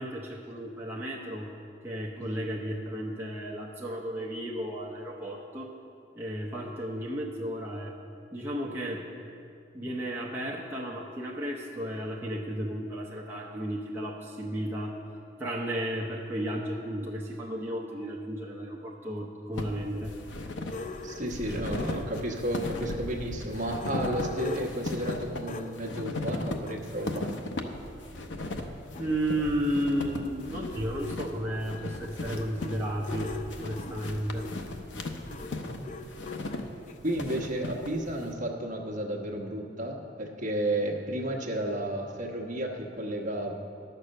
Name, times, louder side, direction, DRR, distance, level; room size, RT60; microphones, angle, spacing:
voice 1, 0.0-1.5 1.8-5.7 6.1-7.9 8.3-9.1 9.7-15.0 15.4-20.1 28.3-28.6 29.0-34.5, equal, 10° right, -4 dB, 0.8 m, -33 dB
sound 1, 19.6-38.3, left 2 dB, 75° left, 0.8 m, -37 dB
sound 2, 20.7-23.0 23.4-27.3 28.0-28.1 28.4-28.5 28.7-37.0, left 3 dB, 40° left, 0.5 m, -43 dB
voice 2, 21.0-27.4 35.8-36.0 37.0-43.5, right 1 dB, 45° right, 0 dB, 1.2 m, -32 dB
11.0 x 6.7 x 6.5 m, 2.5 s
head